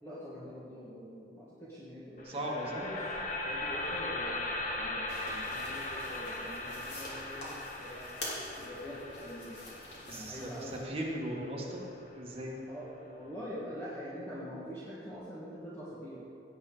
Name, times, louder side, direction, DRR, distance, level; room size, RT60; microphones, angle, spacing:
voice 1, 0.0-3.1 3.4-8.1 8.6-9.6 10.0-10.8 12.7-16.2, equal, 15° left, -9 dB, 1.6 m, -44 dB
sound 1, 2.2-12.3, left 2 dB, 45° left, 1.0 m, -39 dB
voice 2, 2.2-2.9 10.1-11.9 12.1-12.7, right 1 dB, 30° right, -3 dB, 1.7 m, -38 dB
sound 2, 5.1-10.8, left 1 dB, 65° left, 3.2 m, -46 dB
17.0 x 8.2 x 3.9 m, 2.6 s
head